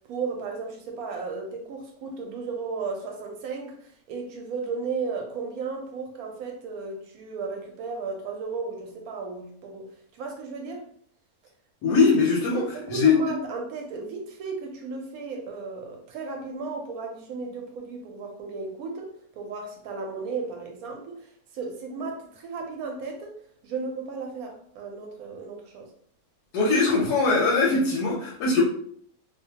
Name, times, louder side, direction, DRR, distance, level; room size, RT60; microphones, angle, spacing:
voice 1, 0.1-10.8 12.5-23.3 23.6-25.9, right 4 dB, 75° right, 2 dB, 1.0 m, -34 dB
voice 2, 11.8-12.6 12.9-13.1 26.5-28.6, left 4 dB, 85° left, -2 dB, 1.1 m, -21 dB
2.6 x 2.1 x 2.7 m, 0.63 s
omnidirectional pair, 1.6 m